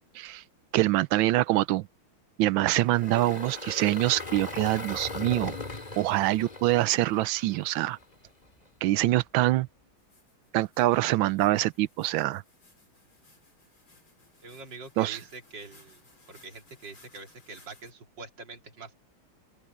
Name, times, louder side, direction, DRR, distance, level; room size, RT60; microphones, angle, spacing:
voice 1, 0.7-1.9 2.4-5.5 6.0-8.0 8.8-9.7 10.5-12.4 15.0-15.2, right 16 dB, 75° right, 1.3 m, -25 dB
Engine, 2.8-8.0, left 3 dB, 20° left, 2.3 m, -38 dB
sound 1, 10.0-17.9, left 2 dB, 70° left, 7.5 m, -60 dB
voice 2, 14.4-16.0 16.3-18.9, right 3 dB, 55° right, 3.7 m, -45 dB
open air
omnidirectional pair, 2.3 m